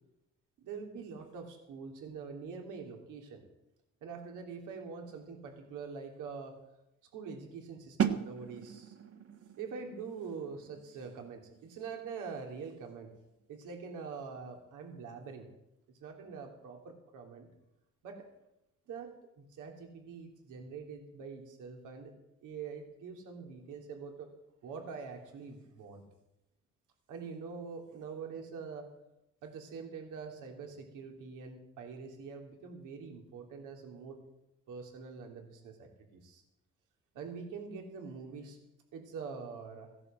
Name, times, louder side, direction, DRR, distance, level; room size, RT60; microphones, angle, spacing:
voice 1, 0.6-3.4 4.0-6.5 7.1-8.9 9.6-13.1 13.5-15.5 16.0-17.5 18.0-18.2 18.9-19.1 19.4-22.1 22.4-24.3 24.6-26.0 27.1-28.9 29.4-34.2 34.7-36.4 37.1-38.6 38.9-39.9, right 5 dB, 90° right, 3 dB, 3.2 m, -44 dB
sound 1, 8.0-13.7, right 8 dB, 50° right, 1.5 m, -38 dB
16.0 x 11.0 x 7.6 m, 0.87 s
cardioid pair, 90°, 30 cm